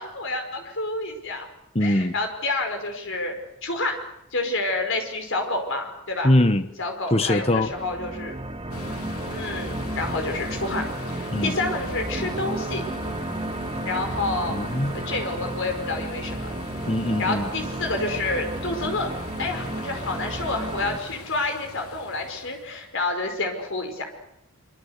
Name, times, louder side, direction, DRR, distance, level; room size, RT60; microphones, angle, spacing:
voice 1, 0.0-1.5 1.8-3.3 3.6-4.0 4.3-6.3 6.8-8.3 9.3-12.8 13.9-14.6 14.9-16.5 17.2-19.1 19.4-24.1, left 2 dB, 55° left, 5 dB, 5.3 m, -29 dB
voice 2, 1.7-2.1 6.2-6.7 7.1-7.7 11.3-11.6 14.5-15.0 16.9-17.5, left 1 dB, 25° left, 10 dB, 1.2 m, -22 dB
sound 1, 7.3-21.0, right 1 dB, 25° right, 1.8 m, -33 dB
sound 2, 8.7-22.9, left 2 dB, 80° left, 3.3 m, -40 dB
25.0 x 25.0 x 8.3 m, 0.81 s
head